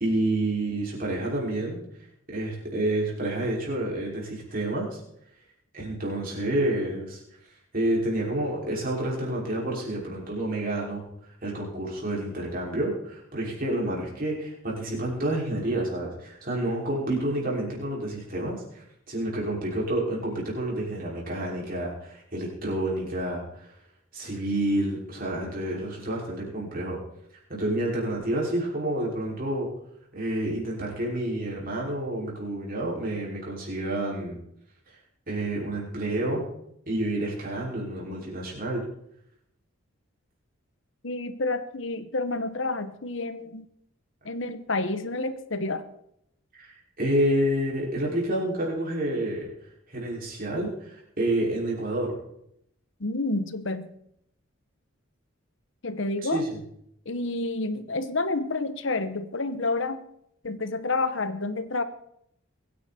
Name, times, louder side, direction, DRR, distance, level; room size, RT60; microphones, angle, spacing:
voice 1, 0.0-1.8 2.3-5.0 5.7-7.2 7.7-11.1 11.4-23.7 24.1-27.0 27.5-29.7 30.1-34.4 35.3-36.4 36.9-38.8 46.5-49.5 49.9-52.2 56.2-56.6, right 1 dB, 45° right, -3 dB, 5.7 m, -29 dB
voice 2, 41.0-43.6 44.2-45.8 53.0-54.0 55.8-56.4 57.0-60.0 60.4-61.8, left 2 dB, 65° left, 11 dB, 1.1 m, -29 dB
22.5 x 9.9 x 4.4 m, 0.74 s
head